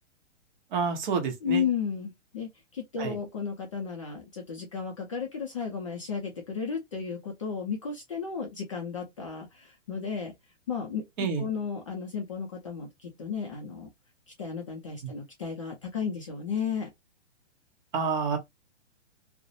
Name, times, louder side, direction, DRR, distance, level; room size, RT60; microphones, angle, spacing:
voice 1, 0.7-1.7 3.0-3.2 11.2-11.5 17.9-18.4, right 5 dB, 40° right, 0.8 m, -28 dB
voice 2, 1.4-10.3 10.7-13.9 14.4-16.9, left 6 dB, 30° left, 0.4 m, -34 dB
2.3 x 2.0 x 2.7 m
hypercardioid pair, 155°, 36 cm